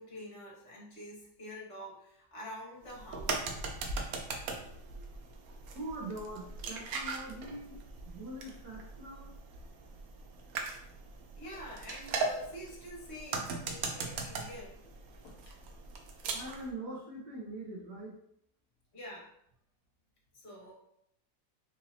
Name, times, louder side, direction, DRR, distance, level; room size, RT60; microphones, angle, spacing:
voice 1, 0.0-3.4 11.4-14.8 18.9-19.3 20.3-20.7, equal, 40° left, -4 dB, 1.2 m, -46 dB
sound 1, 2.8-16.7, right 4 dB, 85° right, 0.7 m, -40 dB
voice 2, 5.7-7.8 8.0-9.3 16.3-18.1, right 1 dB, 65° right, -4 dB, 1.6 m, -43 dB
sound 2, 14.4-14.7 15.2-15.7, left 3 dB, 65° left, 1.3 m, -59 dB
4.0 x 2.8 x 2.8 m, 0.73 s
omnidirectional pair, 2.1 m